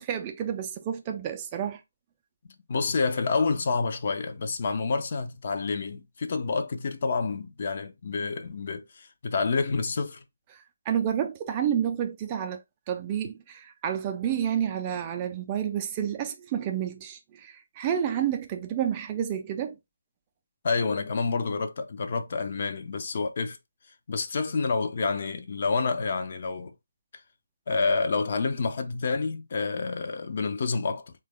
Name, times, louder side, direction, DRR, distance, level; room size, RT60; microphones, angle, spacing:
voice 1, 0.0-1.8 10.9-12.6 12.9-19.7, right 9 dB, 25° right, 0.3 m, -30 dB
voice 2, 2.7-10.2 20.6-23.6 24.1-26.7 27.7-31.1, left 4 dB, 45° left, 0.5 m, -28 dB
3.2 x 2.2 x 3.2 m
figure-of-eight pair, 145°, 0 cm